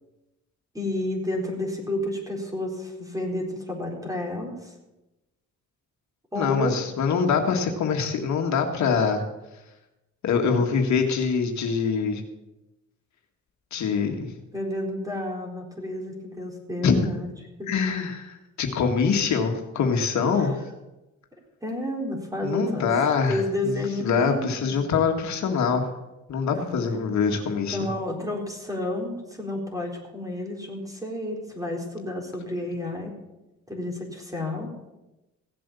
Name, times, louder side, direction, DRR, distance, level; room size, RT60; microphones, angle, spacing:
voice 1, 0.7-4.7 6.3-6.8 10.4-10.6 14.5-17.3 17.6-17.7 20.4-20.5 21.6-22.9 23.3-24.8 26.5-26.8 27.7-33.1 33.7-34.7, left 1 dB, 10° right, 0 dB, 4.1 m, -31 dB
voice 2, 6.4-9.2 10.2-12.2 13.7-14.3 16.8-17.1 17.7-20.5 22.4-25.9 26.3-27.9, left 5 dB, 65° left, 3 dB, 1.9 m, -24 dB
16.5 x 7.7 x 7.0 m, 1.0 s
cardioid pair, 90°, 30 cm